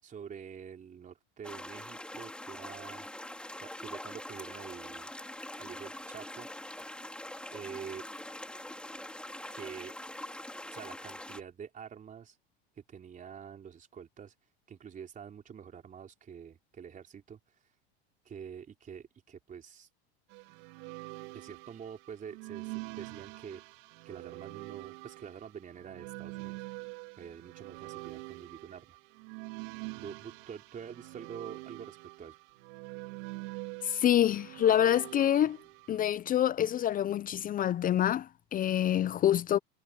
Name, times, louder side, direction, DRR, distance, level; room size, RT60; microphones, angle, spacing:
voice 1, 0.0-3.1 3.6-5.1 5.6-6.5 7.5-8.0 9.5-10.0 10.7-12.4 12.9-14.3 14.7-17.4 18.2-19.9 21.3-23.6 24.0-26.6 27.2-29.0 30.0-32.4, right 7 dB, 25° right, 4.1 m, -46 dB
sound 1, 1.4-11.4, left 1 dB, 5° left, 4.4 m, -43 dB
sound 2, 20.3-36.0, right 27 dB, 65° right, 3.2 m, -45 dB
voice 2, 33.8-35.6 35.9-39.6, left 11 dB, 30° left, 0.7 m, -26 dB
supercardioid pair, 110°, 29 cm